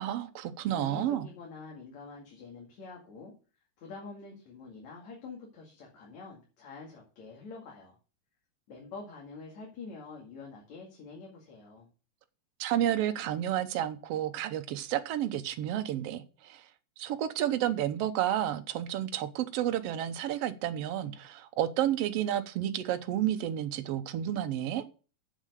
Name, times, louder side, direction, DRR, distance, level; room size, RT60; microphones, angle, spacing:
voice 1, 0.0-1.3 12.6-16.7 17.0-24.8, right 11 dB, 65° right, 1.7 m, -31 dB
voice 2, 0.7-3.3 3.8-8.0 8.7-11.9, left 3 dB, 65° left, 3.5 m, -46 dB
7.7 x 7.5 x 6.6 m
omnidirectional pair, 3.4 m